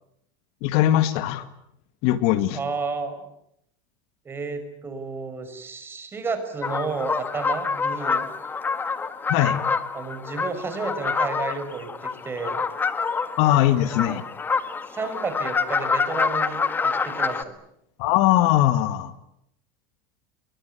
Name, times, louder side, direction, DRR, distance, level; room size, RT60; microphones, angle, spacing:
voice 1, 0.6-1.5 2.0-2.6 9.3-9.6 13.4-14.2 18.0-19.1, left 13 dB, 60° left, 12 dB, 2.0 m, -20 dB
voice 2, 2.5-3.3 4.2-8.3 9.9-12.6 13.6-14.2 14.9-17.6, right 4 dB, 20° right, 9 dB, 5.8 m, -32 dB
sound 1, 6.6-17.4, left 5 dB, 15° left, 1.7 m, -27 dB
29.5 x 23.0 x 8.3 m, 0.76 s
supercardioid pair, 135°, 12 cm